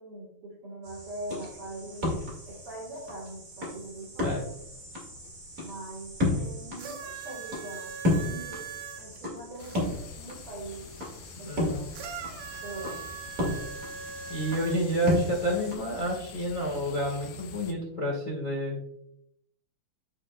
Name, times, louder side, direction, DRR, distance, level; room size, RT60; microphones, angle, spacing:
voice 1, 0.0-4.7 5.6-8.7 9.0-10.9 11.4-12.1 12.6-13.0, right 2 dB, 60° right, -6 dB, 1.5 m, -42 dB
sound 1, 0.8-15.7, left 1 dB, 35° right, 1.3 m, -34 dB
sound 2, 6.8-9.8 11.9-15.2 16.1-16.2, right 8 dB, 75° right, 2.7 m, -41 dB
sound 3, 9.6-17.7, left 7 dB, 90° left, 2.5 m, -47 dB
voice 2, 11.4-11.8 14.3-18.8, equal, 75° left, -3 dB, 0.7 m, -29 dB
12.5 x 4.4 x 2.2 m, 0.75 s
omnidirectional pair, 4.3 m